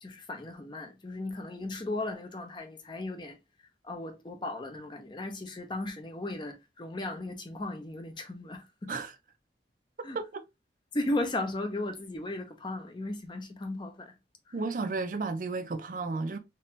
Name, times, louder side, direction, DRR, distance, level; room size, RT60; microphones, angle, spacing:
voice 1, 0.0-3.4 3.8-8.9 10.0-10.2 10.9-14.1, left 2 dB, 25° left, 0.6 m, -36 dB
voice 2, 14.5-16.4, right 3 dB, 50° right, 0.4 m, -33 dB
3.4 x 2.9 x 3.0 m
head